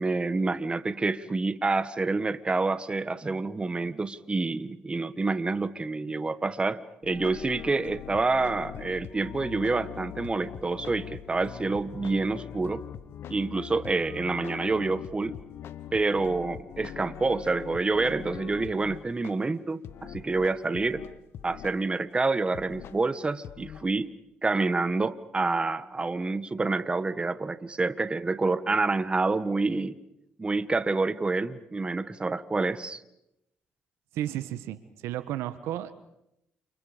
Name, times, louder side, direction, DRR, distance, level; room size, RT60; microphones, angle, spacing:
voice 1, 0.0-12.8 13.3-15.3 15.9-21.0 21.4-24.1 24.4-30.0 30.4-33.0, right 3 dB, 25° right, 13 dB, 1.6 m, -28 dB
sound 1, 7.0-19.3 19.8-21.8 22.2-22.3 22.5-23.0 23.4-23.9, left 10 dB, 70° left, 1.5 m, -42 dB
voice 2, 34.1-35.9, right 13 dB, 85° right, 13 dB, 1.4 m, -33 dB
29.5 x 29.0 x 5.2 m, 0.83 s
supercardioid pair, 75°, 4 cm